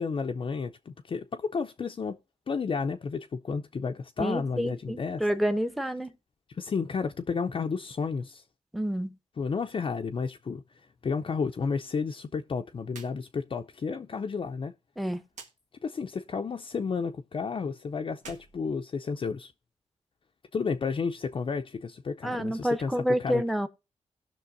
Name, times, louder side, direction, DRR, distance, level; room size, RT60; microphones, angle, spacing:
voice 1, 0.0-2.2 2.5-5.2 6.5-8.4 9.4-10.6 11.0-14.7 15.8-19.5 20.5-23.4, left 5 dB, 45° left, 0.6 m, -32 dB
voice 2, 4.2-6.1 8.7-9.1 15.0-15.2 22.2-23.7, equal, ahead, 0.8 m, -28 dB
sound 1, 12.9-13.2 13.5-13.6 15.3-15.5 18.1-19.4, right 4 dB, 90° right, 1.6 m, -48 dB
17.5 x 6.0 x 2.6 m
cardioid pair, 70°, 12 cm